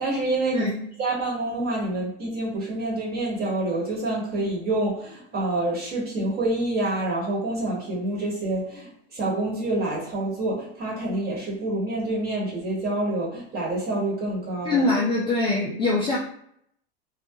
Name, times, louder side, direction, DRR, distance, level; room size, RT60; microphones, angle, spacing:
voice 1, 0.0-0.7 1.0-14.8, right 2 dB, 30° right, -4 dB, 1.2 m, -27 dB
voice 2, 0.5-0.8 14.6-16.2, left 2 dB, 15° left, -5 dB, 0.4 m, -23 dB
2.4 x 2.3 x 2.7 m, 0.68 s
hypercardioid pair, 115°, 32 cm